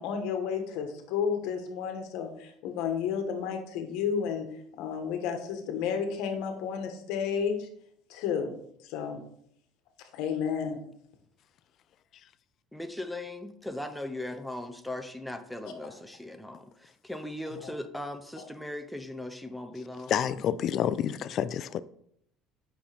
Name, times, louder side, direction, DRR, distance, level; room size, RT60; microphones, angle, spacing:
voice 1, 0.0-4.5 4.8-7.7 8.1-8.5 8.8-9.2 10.1-10.8, left 7 dB, 75° left, 1.2 m, -31 dB
voice 2, 12.7-20.2, left 1 dB, ahead, 0.6 m, -38 dB
voice 3, 20.1-21.8, left 9 dB, 45° left, 0.4 m, -28 dB
8.3 x 5.6 x 3.4 m
cardioid pair, 135°, 0 cm